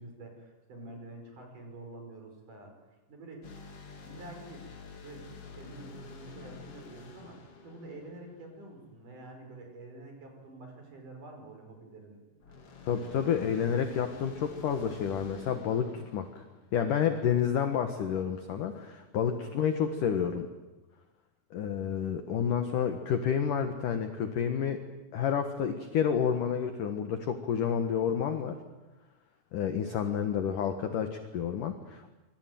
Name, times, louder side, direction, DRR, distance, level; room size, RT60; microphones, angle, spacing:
voice 1, 0.0-2.7 3.1-3.4 4.0-4.6 5.0-12.5 19.1-19.2, right 2 dB, 40° right, 3 dB, 6.4 m, -48 dB
sound 1, 3.4-8.9 12.4-17.2, left 4 dB, 40° left, 2.4 m, -49 dB
voice 2, 12.9-16.3 16.7-20.5 21.5-24.8 25.1-28.6 29.5-32.1, left 8 dB, 70° left, 7 dB, 2.0 m, -29 dB
25.5 x 23.0 x 9.3 m, 1.1 s
omnidirectional pair, 5.9 m